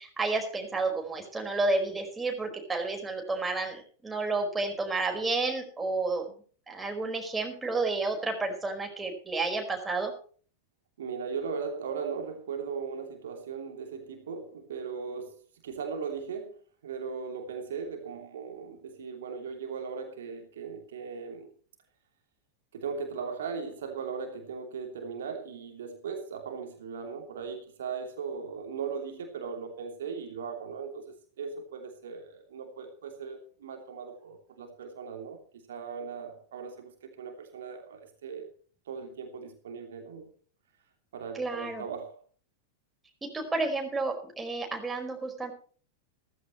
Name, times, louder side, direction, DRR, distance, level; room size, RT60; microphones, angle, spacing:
voice 1, 0.0-6.2 6.7-10.1 41.3-41.8 43.2-45.5, right 3 dB, 10° right, 3 dB, 4.9 m, -31 dB
voice 2, 11.0-21.5 22.7-35.4 35.7-38.5 38.9-40.3 41.1-42.2, right 5 dB, 60° right, 4 dB, 3.0 m, -38 dB
16.5 x 15.0 x 3.1 m, 0.43 s
figure-of-eight pair, 90°, 0 cm